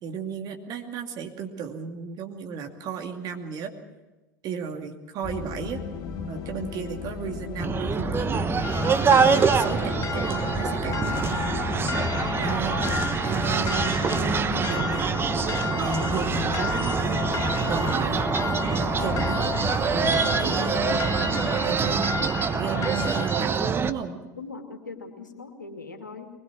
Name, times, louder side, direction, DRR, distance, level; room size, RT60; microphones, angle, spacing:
voice 1, 0.0-3.7 4.4-5.8 6.2-8.4 9.1-11.4 12.4-12.8 13.2-15.1 15.7-17.3 17.7-18.3 18.7-19.5 19.9-22.1 22.5-24.2, right 6 dB, 40° right, 3 dB, 2.6 m, -34 dB
sound 1, 5.2-22.3, left 6 dB, 50° left, 1.9 m, -35 dB
sound 2, 7.6-23.9, right 6 dB, 25° right, 1.1 m, -25 dB
sound 3, 8.6-23.5, left 5 dB, 35° left, 1.4 m, -34 dB
voice 2, 12.2-12.7 24.4-26.3, left 4 dB, 85° left, 3 dB, 2.4 m, -41 dB
23.0 x 21.0 x 6.2 m, 1.1 s
figure-of-eight pair, 75°, 10 cm